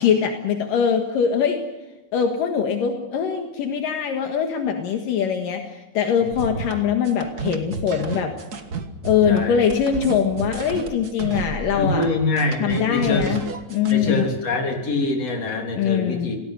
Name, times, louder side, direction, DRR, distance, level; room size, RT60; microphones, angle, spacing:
voice 1, 0.0-1.6 2.1-8.3 9.0-12.1 12.6-13.4 13.7-14.3 15.8-16.3, left 7 dB, 75° left, 4 dB, 3.3 m, -22 dB
sound 1, 6.3-14.1, right 4 dB, 45° right, 1.3 m, -32 dB
voice 2, 9.3-9.6 11.7-13.4 13.9-16.4, left 2 dB, 45° left, 2 dB, 4.4 m, -24 dB
28.5 x 18.0 x 8.1 m, 1.0 s
omnidirectional pair, 3.9 m